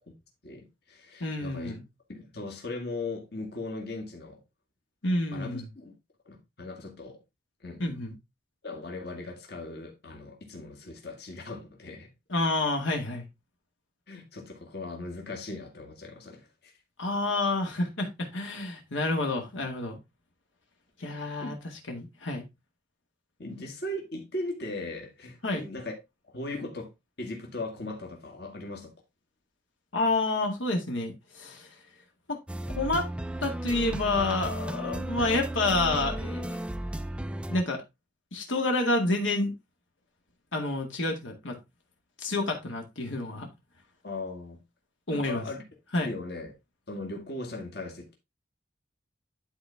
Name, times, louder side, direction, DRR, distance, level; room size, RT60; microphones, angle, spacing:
voice 1, 0.4-1.7 2.1-4.4 5.3-6.0 6.3-7.2 7.6-7.8 8.6-12.1 14.1-16.7 21.1-21.5 23.4-26.0 26.3-26.9 27.2-28.9 44.0-44.6 45.1-45.6 46.0-46.5 46.9-48.1, left 2 dB, 55° left, 2.0 m, -38 dB
voice 2, 1.2-1.8 5.0-5.7 7.8-8.1 12.3-13.3 17.0-20.0 21.0-21.6 21.9-22.5 25.4-25.7 29.9-31.7 32.3-32.4 32.7-33.1 33.4-36.6 37.5-37.8 38.3-39.5 40.5-41.5 42.2-43.5 45.1-45.4 45.9-46.1, left 2 dB, 80° left, 2.0 m, -29 dB
sound 1, 32.5-37.6, right 1 dB, 5° right, 0.3 m, -34 dB
11.5 x 4.1 x 3.5 m
head